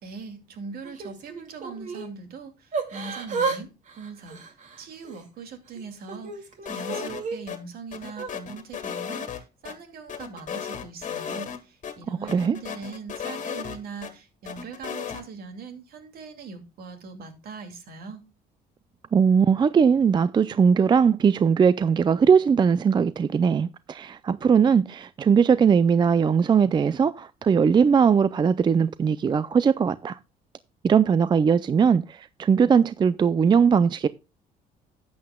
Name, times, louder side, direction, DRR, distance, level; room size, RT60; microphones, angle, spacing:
voice 1, 0.0-4.4 4.8-18.2, right 4 dB, 65° right, 2.3 m, -41 dB
Yell / Crying sobbing, 0.8-2.1 2.7-3.6 3.9-5.2 5.8-7.4 8.1-8.3, right 4 dB, 45° right, 2.2 m, -32 dB
sound 1, 6.7-7.6 7.9-9.7 10.1-11.6 11.8-11.9 12.3-14.1 14.5-15.2, left 8 dB, 45° left, 1.8 m, -35 dB
voice 2, 12.2-12.6 19.1-30.2 30.8-34.1, right 6 dB, 25° right, 0.4 m, -20 dB
12.5 x 8.6 x 2.2 m
cardioid pair, 110°, 17 cm